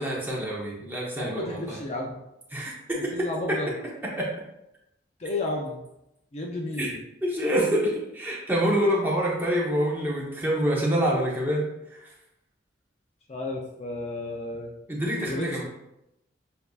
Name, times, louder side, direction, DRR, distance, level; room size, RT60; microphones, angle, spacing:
voice 1, 0.0-1.8 2.5-3.3 4.2-4.3 6.8-6.9 7.2-11.6 11.9-12.1 14.9-15.6, equal, 10° right, -4 dB, 0.8 m, -26 dB
voice 2, 1.1-2.2 3.1-3.7 5.2-5.8 6.3-7.0 13.3-14.7 15.3-15.6, left 2 dB, 35° left, -1 dB, 0.4 m, -32 dB
6.6 x 2.6 x 2.3 m, 0.87 s
head